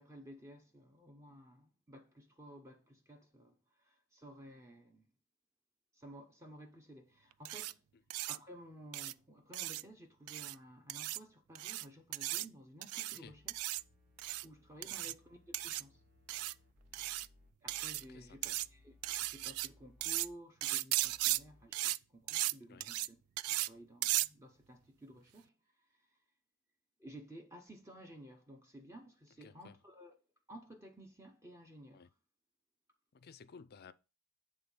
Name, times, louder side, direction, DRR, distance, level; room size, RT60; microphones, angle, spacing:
voice 1, 0.0-5.1 5.9-7.8 8.3-13.5 14.4-16.0 17.6-18.9 19.2-25.5 27.0-30.1 30.5-32.0, equal, 15° right, 0.8 m, -54 dB
sound 1, 7.4-7.7 8.1-8.4 8.9-9.1 9.5-9.8 10.3-10.5 10.9-11.2 11.5-11.8 12.1-12.5 12.8-13.2 13.5-13.8 14.2-14.4 14.8-15.1 15.5-15.8 16.3-16.5 16.9-17.3 17.7-18.0 18.4-18.7 19.0-19.7 20.0-20.3 20.6-21.4 21.7-22.0 22.3-22.5 22.8-23.1 23.4-23.7 24.0-24.3, right 16 dB, 75° right, 0.3 m, -36 dB
sound 2, 13.2-20.4 20.9-21.7, left 2 dB, 50° right, 3.8 m, -66 dB
voice 2, 18.1-18.6 21.2-21.3 22.7-22.9 29.4-29.8 31.9-32.1 33.1-33.9, left 5 dB, 45° left, 0.4 m, -57 dB
7.9 x 3.6 x 5.4 m
head